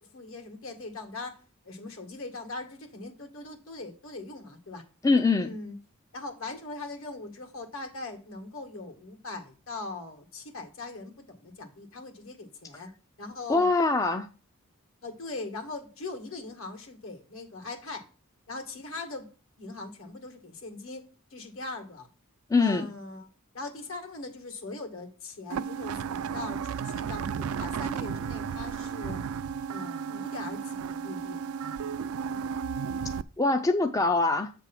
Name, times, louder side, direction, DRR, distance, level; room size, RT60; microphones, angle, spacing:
voice 1, 0.0-4.8 5.4-5.8 6.1-12.9 13.2-13.7 15.0-18.1 18.5-19.3 19.6-21.0 21.3-22.1 22.6-23.3 23.5-29.2 29.7-31.4, left 3 dB, 70° left, 1.9 m, -40 dB
voice 2, 5.0-5.5 13.5-14.3 22.5-22.9 33.4-34.5, left 3 dB, 15° left, 0.3 m, -23 dB
sound 1, 25.5-33.2, right 6 dB, 80° right, 0.4 m, -33 dB
8.1 x 3.5 x 5.9 m
head